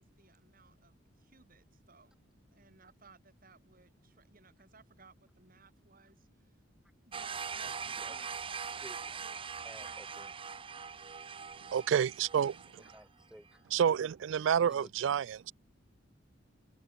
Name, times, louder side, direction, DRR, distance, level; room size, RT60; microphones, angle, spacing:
voice 1, 0.0-2.2 2.5-6.6 7.0-8.8 9.1-10.0, right 4 dB, 45° right, 6.1 m, -61 dB
sound 1, 7.1-13.0, right 6 dB, 30° right, 0.8 m, -42 dB
voice 2, 7.6-8.1 8.8-9.0 9.6-10.3 12.9-13.7 14.6-14.9, equal, 5° right, 1.2 m, -54 dB
voice 3, 11.7-12.8 13.7-15.5, right 8 dB, 75° right, 0.3 m, -29 dB
head